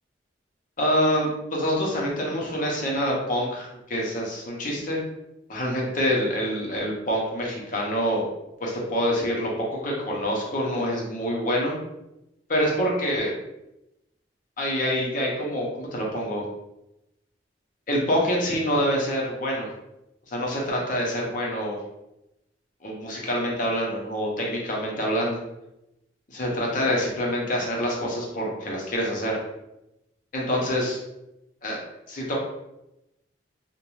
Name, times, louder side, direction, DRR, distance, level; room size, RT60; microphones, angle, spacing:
voice 1, 0.8-5.0 5.5-8.2 8.6-11.8 12.5-13.3 14.6-16.5 17.9-19.7 20.3-21.8 22.8-25.4 26.3-29.4 30.3-31.0 31.6-31.8 32.1-32.4, equal, 45° left, -2 dB, 0.7 m, -26 dB
2.5 x 2.2 x 3.0 m, 0.89 s
head